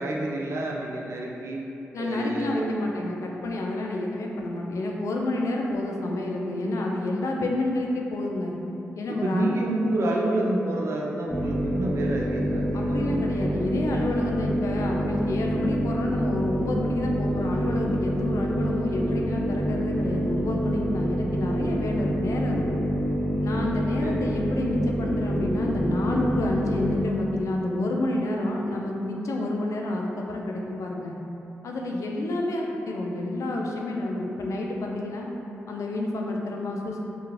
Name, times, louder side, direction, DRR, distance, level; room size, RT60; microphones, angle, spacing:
voice 1, 0.0-1.6 2.0-2.8 9.1-13.4 24.0-24.2, right 1 dB, 55° right, -2 dB, 0.4 m, -28 dB
voice 2, 1.9-8.5 9.0-9.6 12.7-22.8 23.4-31.1 31.6-35.3 35.7-37.0, left 2 dB, 65° left, 0 dB, 0.3 m, -29 dB
sound 1, 11.3-27.1, equal, 25° left, 0.6 m, -27 dB
2.3 x 2.3 x 3.1 m, 2.9 s
supercardioid pair, 45°, 6 cm